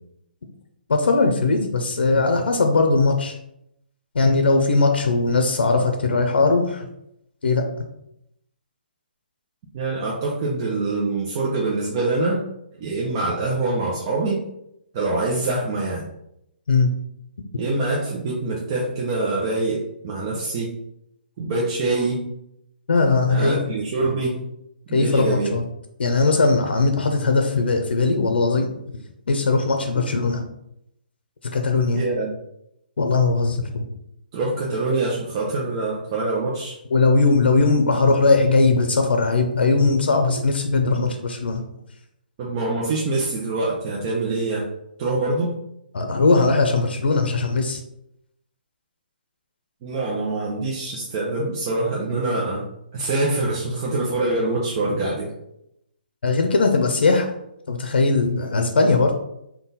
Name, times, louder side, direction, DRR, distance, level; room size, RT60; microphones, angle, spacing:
voice 1, 0.9-3.3 4.1-6.9 7.4-7.6 16.7-16.9 22.9-23.6 24.9-25.6 26.0-28.7 29.3-30.4 31.5-32.0 33.0-33.9 36.9-41.6 45.9-47.8 56.2-57.3 57.7-59.1, left 3 dB, 85° left, 4 dB, 0.6 m, -19 dB
voice 2, 9.7-12.4 12.8-14.4 14.9-16.0 17.6-20.7 21.4-22.3 23.3-24.4 24.9-25.5 31.9-32.3 34.3-36.8 42.4-44.7 45.0-45.5 49.8-52.7 52.9-55.3, right 2 dB, 25° right, -4 dB, 0.5 m, -24 dB
3.8 x 2.3 x 4.0 m, 0.79 s
hypercardioid pair, 170°, 6 cm